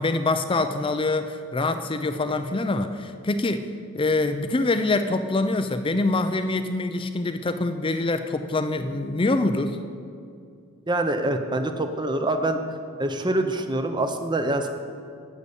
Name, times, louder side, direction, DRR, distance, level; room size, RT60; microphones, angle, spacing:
voice 1, 0.0-3.7 3.9-9.8, left 2 dB, 25° left, 8 dB, 0.5 m, -25 dB
voice 2, 10.9-12.6 13.0-14.7, right 2 dB, 20° right, 7 dB, 0.7 m, -25 dB
12.0 x 6.7 x 8.3 m, 2.4 s
head